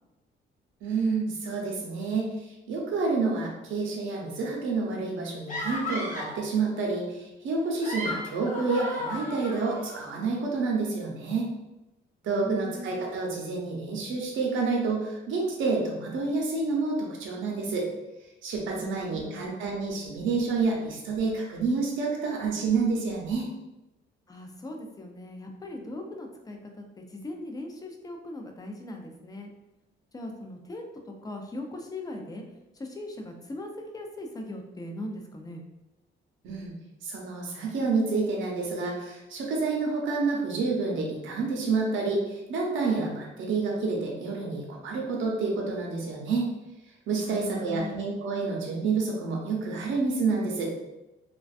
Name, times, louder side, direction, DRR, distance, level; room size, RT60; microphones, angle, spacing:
voice 1, 0.8-2.3 2.7-11.5 12.2-17.9 18.4-23.5 36.4-36.7 37.0-46.5 47.1-50.7, right 4 dB, 75° right, -1 dB, 0.7 m, -29 dB
sound 1, 5.5-6.4 7.6-10.0, left 1 dB, 40° left, 0.8 m, -35 dB
voice 2, 12.2-12.9 18.7-19.5 24.3-29.5 30.1-32.4 32.7-35.6 47.1-48.1, left 1 dB, 20° left, 3 dB, 0.4 m, -39 dB
2.4 x 2.2 x 2.4 m, 0.99 s
cardioid pair, 90°, 20 cm